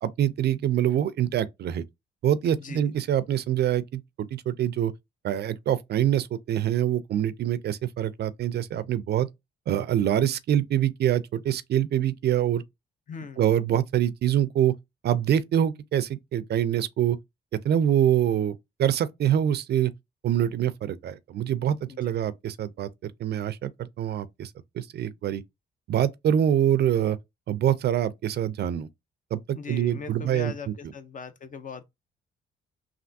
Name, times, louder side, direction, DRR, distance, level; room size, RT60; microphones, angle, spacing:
voice 1, 0.0-1.8 2.2-4.9 5.2-9.3 9.7-12.6 13.4-14.7 15.0-17.2 17.6-19.9 20.2-25.4 25.9-27.2 27.5-28.9 29.3-30.7, right 10 dB, 55° right, 0.4 m, -25 dB
voice 2, 2.5-2.9 13.1-13.4 21.9-22.1 29.6-31.8, left 5 dB, 40° left, 0.6 m, -39 dB
3.4 x 2.4 x 2.6 m
cardioid pair, 90°, 20 cm